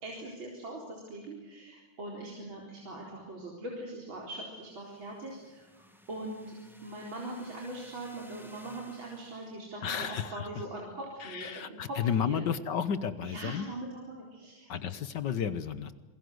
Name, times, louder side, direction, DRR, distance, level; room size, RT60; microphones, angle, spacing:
voice 1, 0.0-6.5 6.8-12.4 13.2-14.7, right 1 dB, 65° right, -2 dB, 4.9 m, -41 dB
sound 1, 4.7-9.6, equal, ahead, 2.0 m, -57 dB
voice 2, 9.8-10.4 11.3-13.7 14.7-15.9, left 7 dB, 60° left, 13 dB, 1.6 m, -32 dB
28.0 x 21.5 x 7.9 m, 1.2 s
omnidirectional pair, 2.3 m